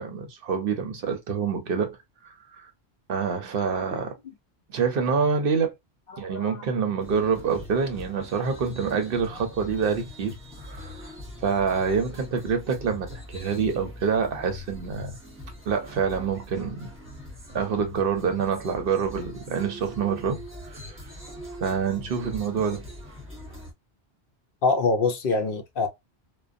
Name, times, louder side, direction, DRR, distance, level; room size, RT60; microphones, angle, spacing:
voice 1, 0.0-2.0 2.2-2.7 3.1-4.2 4.7-5.7 6.2-11.1 11.4-15.2 15.7-16.9 17.5-21.1 21.6-22.8, right 6 dB, 65° right, 0.7 m, -27 dB
voice 2, 6.1-6.6 24.6-25.9, left 3 dB, 65° left, 0.7 m, -25 dB
sound 1, 7.0-23.7, left 1 dB, 10° right, 0.9 m, -42 dB
2.4 x 2.2 x 2.4 m
omnidirectional pair, 1.1 m